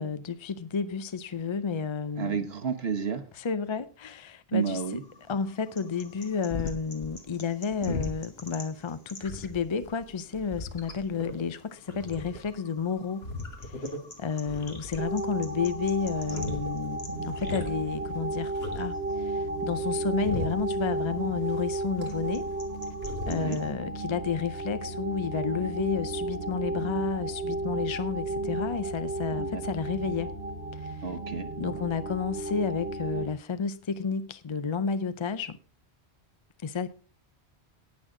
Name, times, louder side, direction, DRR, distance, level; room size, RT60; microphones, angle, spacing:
voice 1, 0.0-2.4 3.4-4.8 5.3-13.3 13.6-22.5 23.3-30.3 30.7-31.1 31.6-35.6 36.6-36.9, left 5 dB, 40° left, 0.4 m, -31 dB
voice 2, 2.2-3.2 4.5-5.0 23.3-23.6 29.4-29.6 31.0-31.5, right 6 dB, 70° right, 1.3 m, -30 dB
sound 1, 4.6-23.7, left 2 dB, 65° left, 2.2 m, -40 dB
sound 2, 15.0-33.3, right 2 dB, 90° right, 1.4 m, -33 dB
18.0 x 6.4 x 3.7 m
omnidirectional pair, 1.1 m